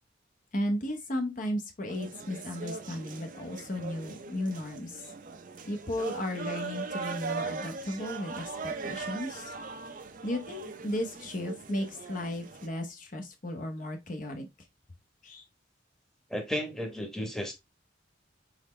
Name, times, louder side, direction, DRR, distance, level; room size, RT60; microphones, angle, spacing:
voice 1, 0.5-5.1 5.7-9.5 10.2-14.5 15.2-15.4, left 1 dB, 45° left, 0.8 m, -35 dB
sound 1, 1.9-12.7, right 4 dB, 45° right, 0.7 m, -40 dB
voice 2, 16.3-17.5, equal, 5° left, 1.0 m, -33 dB
4.2 x 4.0 x 3.1 m
head